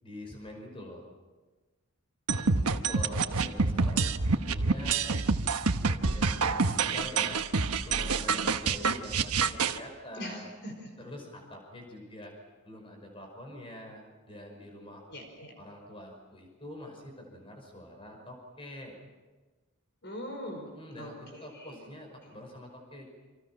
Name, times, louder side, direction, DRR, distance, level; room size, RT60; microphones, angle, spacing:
voice 1, 0.0-1.1 2.5-5.1 5.9-7.4 7.7-10.5 11.0-12.4 12.6-15.0 15.6-19.0 20.7-21.1 21.4-23.0, left 1 dB, 25° left, 2 dB, 5.5 m, -45 dB
sound 1, 2.3-9.8, right 4 dB, 90° right, 1.2 m, -27 dB
voice 2, 10.1-11.0 15.1-15.5 20.0-20.7 21.0-21.9 22.2-22.3, equal, 50° left, 4 dB, 5.0 m, -42 dB
29.5 x 26.5 x 6.0 m, 1.3 s
head